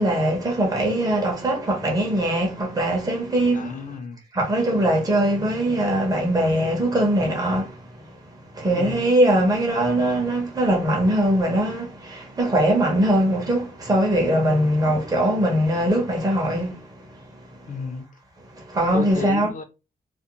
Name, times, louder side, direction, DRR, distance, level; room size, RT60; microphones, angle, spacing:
voice 1, 0.0-3.7 4.3-7.8 8.5-17.0 17.7-17.8 18.6-19.5, right 1 dB, 20° right, 0.7 m, -21 dB
voice 2, 3.5-4.2 8.7-9.1 14.8-15.0 17.7-18.1 18.9-19.6, left 5 dB, 50° left, 0.4 m, -32 dB
2.4 x 2.0 x 2.8 m
wide cardioid pair, 130°, 18 cm